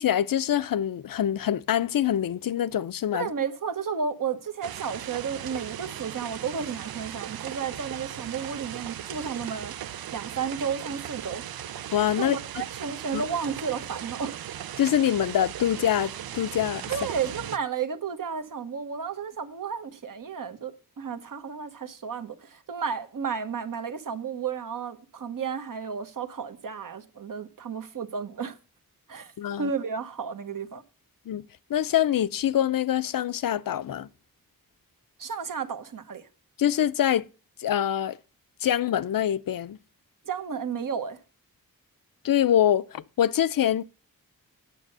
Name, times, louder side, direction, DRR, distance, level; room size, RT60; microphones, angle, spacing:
voice 1, 0.0-3.3 11.9-12.4 13.1-13.2 14.8-16.8 29.4-29.7 31.3-34.1 36.6-37.2 37.6-38.2 38.6-39.8 42.2-43.8, left 10 dB, 70° left, 0.6 m, -25 dB
voice 2, 3.1-9.7 10.1-11.4 12.2-14.4 16.9-28.6 29.1-29.3 29.6-30.8 35.2-36.2 40.2-41.2, right 6 dB, 65° right, 1.2 m, -32 dB
sound 1, 4.6-17.6, right 11 dB, 85° right, 0.5 m, -38 dB
9.2 x 6.7 x 6.7 m
wide cardioid pair, 120°, 36 cm